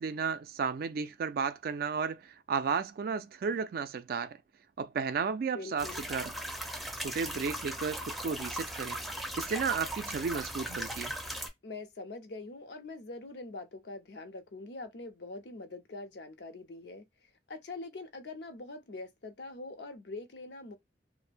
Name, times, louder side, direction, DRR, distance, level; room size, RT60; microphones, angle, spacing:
voice 1, 0.0-4.4 4.8-6.3 7.0-9.0 9.4-11.1, right 5 dB, 55° right, 0.3 m, -33 dB
voice 2, 5.5-6.0 11.6-17.0 17.5-20.7, left 3 dB, 65° left, 0.6 m, -43 dB
sound 1, 5.8-11.5, right 1 dB, ahead, 0.5 m, -38 dB
2.5 x 2.0 x 3.3 m
head